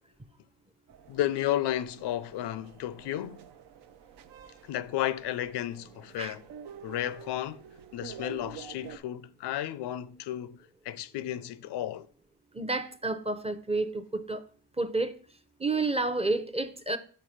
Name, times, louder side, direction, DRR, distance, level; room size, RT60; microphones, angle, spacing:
sound 1, 0.9-9.0, right 7 dB, 75° right, 0.6 m, -49 dB
voice 1, 1.1-3.4 4.6-6.4 6.8-7.7 7.9-12.1, left 12 dB, 80° left, 0.5 m, -33 dB
voice 2, 12.5-14.4 14.8-15.1 15.6-17.0, right 2 dB, 15° right, 0.6 m, -30 dB
5.9 x 4.8 x 4.9 m
cardioid pair, 80°, 40 cm